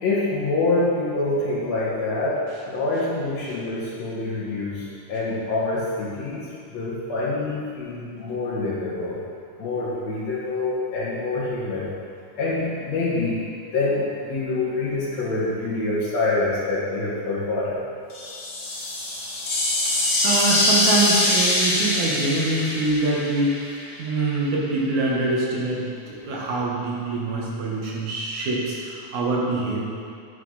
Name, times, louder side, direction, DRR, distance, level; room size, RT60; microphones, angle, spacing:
voice 1, 0.0-2.4 2.7-9.2 9.6-11.9 12.4-13.4 13.7-17.8, left 2 dB, 60° left, -6 dB, 2.8 m, -26 dB
sound 1, 18.1-24.0, left 1 dB, 45° left, 1.2 m, -23 dB
voice 2, 20.0-23.6 24.0-29.9, right 2 dB, 70° right, -4 dB, 2.8 m, -24 dB
9.7 x 8.2 x 4.1 m, 2.3 s
omnidirectional pair, 3.5 m